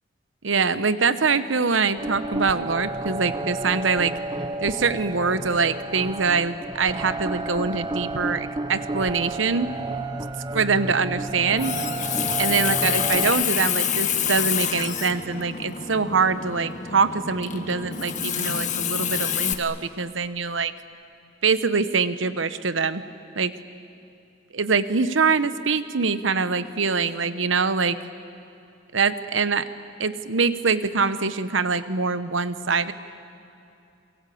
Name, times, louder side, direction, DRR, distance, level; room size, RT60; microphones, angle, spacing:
voice 1, 0.4-4.1 4.6-9.7 10.5-11.7 12.4-20.7 21.4-23.0 23.4-23.5 24.5-28.0 28.9-29.7 30.0-32.9, right 4 dB, 85° right, 13 dB, 1.1 m, -24 dB
sound 1, 2.0-13.4, right 2 dB, 20° right, 0.8 m, -31 dB
Water tap faucet, 11.4-19.5, left 8 dB, 40° left, 1.5 m, -27 dB
29.0 x 23.0 x 8.6 m, 2.7 s
head